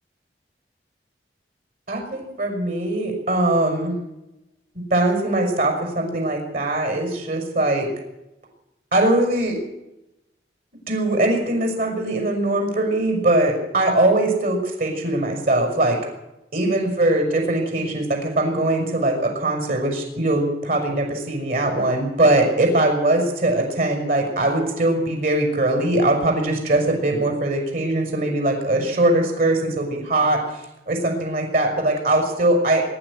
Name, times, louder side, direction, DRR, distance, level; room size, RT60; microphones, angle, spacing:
voice 1, 1.9-3.9 4.9-7.9 8.9-9.6 10.9-16.0 16.5-32.8, right 2 dB, 55° right, 2 dB, 5.9 m, -21 dB
23.5 x 12.0 x 9.9 m, 0.92 s
head